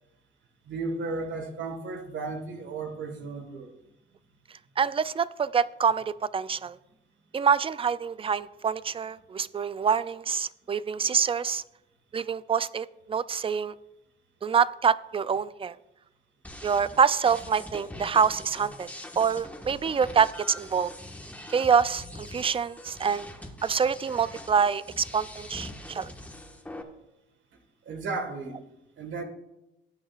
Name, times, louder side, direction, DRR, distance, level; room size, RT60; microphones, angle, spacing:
voice 1, 0.7-3.7 27.9-28.6 29.0-29.2, right 3 dB, 70° right, 4 dB, 1.7 m, -34 dB
voice 2, 4.8-6.8 7.3-11.6 12.1-13.7 14.4-15.7 16.6-18.9 19.2-20.9 21.5-22.0 22.3-23.3 23.6-26.1, right 6 dB, 30° right, 17 dB, 0.4 m, -26 dB
sound 1, 16.4-26.8, left 1 dB, 5° left, 1.5 m, -43 dB
18.0 x 9.4 x 2.5 m, 0.92 s
cardioid pair, 90°, 20 cm